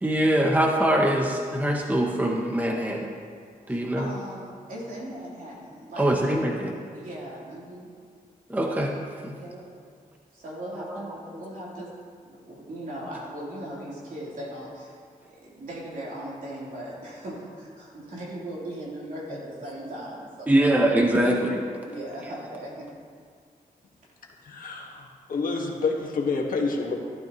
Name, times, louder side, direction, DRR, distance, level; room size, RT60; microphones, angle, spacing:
voice 1, 0.0-3.2 3.7-4.1 6.0-6.7 8.5-8.9 9.2-9.4 10.9-11.2 20.5-21.6, right 1 dB, 10° right, 0 dB, 0.8 m, -23 dB
voice 2, 3.7-6.6 6.9-7.9 9.3-9.7 10.3-12.0 12.2-20.8 21.2-21.5 21.8-22.9, right 1 dB, 70° right, -6 dB, 3.5 m, -38 dB
voice 3, 24.4-26.9, left 4 dB, 70° left, 0 dB, 1.7 m, -28 dB
15.0 x 12.0 x 3.1 m, 2.2 s
wide cardioid pair, 140°, 15 cm